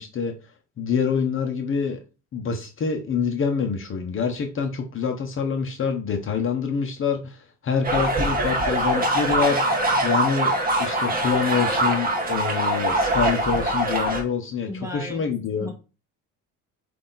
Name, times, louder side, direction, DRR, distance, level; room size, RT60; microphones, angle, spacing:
voice 1, 0.0-2.0 2.3-9.8 10.0-10.5 10.8-15.7, left 6 dB, 40° left, 1.0 m, -26 dB
sound 1, 7.8-14.2, right 1 dB, 25° right, 1.2 m, -23 dB
voice 2, 14.7-15.2 15.6-15.7, equal, 10° right, 1.4 m, -34 dB
8.2 x 2.8 x 4.0 m
cardioid pair, 155°, 33 cm